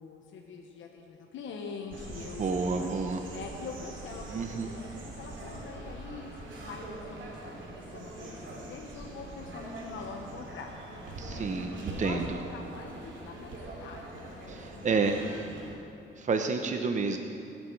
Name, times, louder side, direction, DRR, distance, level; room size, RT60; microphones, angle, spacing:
voice 1, 0.0-2.9 3.3-6.3 6.6-10.7 11.3-11.5 11.9-13.5 13.8-15.4, left 4 dB, 75° left, 2 dB, 1.2 m, -44 dB
sound 1, 1.9-15.7, right 2 dB, 70° right, 3.1 m, -43 dB
voice 2, 2.4-3.2 4.3-4.7 11.2-12.4 14.5-15.5 16.2-17.2, right 4 dB, 40° right, 5 dB, 0.9 m, -30 dB
21.5 x 8.7 x 4.7 m, 2.6 s
cardioid pair, 90°, 20 cm